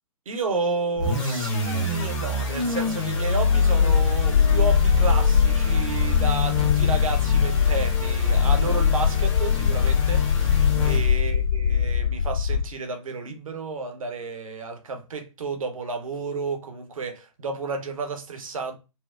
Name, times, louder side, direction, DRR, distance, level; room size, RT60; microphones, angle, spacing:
voice 1, 0.3-18.7, right 3 dB, 70° right, 0.8 m, -32 dB
sound 1, 1.0-11.4, left 5 dB, 30° left, 1.2 m, -24 dB
sound 2, 3.8-12.6, left 7 dB, 65° left, 0.5 m, -23 dB
4.3 x 2.0 x 2.4 m
figure-of-eight pair, 120°, 18 cm